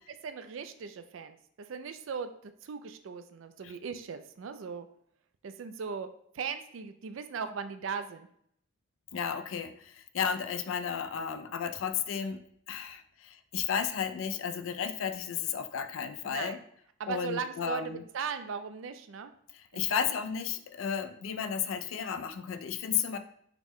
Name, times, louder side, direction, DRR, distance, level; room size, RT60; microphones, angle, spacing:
voice 1, 0.1-4.9 5.4-6.1 6.3-8.3 16.2-16.6 17.0-19.3 19.7-20.0, right 6 dB, 75° right, 9 dB, 0.4 m, -38 dB
voice 2, 9.1-12.4 12.7-16.6 17.1-18.0 19.5-23.2, left 7 dB, 80° left, 10 dB, 0.4 m, -33 dB
5.9 x 2.1 x 3.6 m, 0.69 s
head